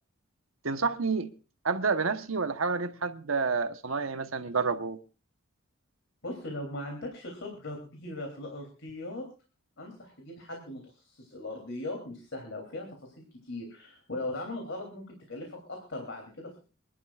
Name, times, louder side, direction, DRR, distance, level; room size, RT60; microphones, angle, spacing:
voice 1, 0.6-1.3 1.6-5.0, right 4 dB, 75° right, 1.1 m, -29 dB
voice 2, 6.2-9.2 9.8-16.7, left 2 dB, 65° left, 3.3 m, -39 dB
26.5 x 11.5 x 2.5 m
head